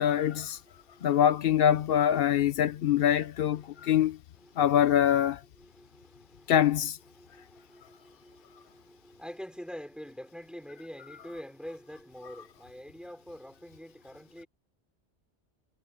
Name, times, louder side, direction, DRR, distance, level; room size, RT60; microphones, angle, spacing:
voice 1, 0.0-0.6 1.0-4.2 4.6-5.4 6.5-7.0, left 10 dB, 65° left, 0.7 m, -24 dB
voice 2, 0.6-1.2 3.5-4.0 4.4-4.8 5.6-6.6 7.1-14.5, equal, ahead, 4.2 m, -46 dB
omnidirectional pair, 1.1 m